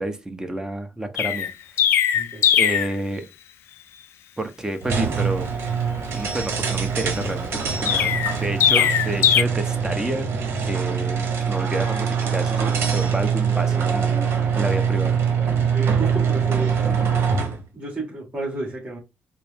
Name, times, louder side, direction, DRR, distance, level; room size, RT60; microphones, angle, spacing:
voice 1, 0.0-1.5 2.5-3.3 4.4-5.5 6.1-10.3 10.7-15.2, right 1 dB, 15° right, 0.9 m, -29 dB
Chirp tweet, 1.2-2.9 7.9-9.4, left 9 dB, 85° left, 0.4 m, -19 dB
voice 2, 2.1-2.5 15.7-17.1 17.7-19.0, right 2 dB, 35° right, 1.8 m, -32 dB
sound 1, 4.8-17.6, right 6 dB, 75° right, 1.0 m, -23 dB
4.2 x 2.1 x 3.5 m
cardioid pair, 75°, 4 cm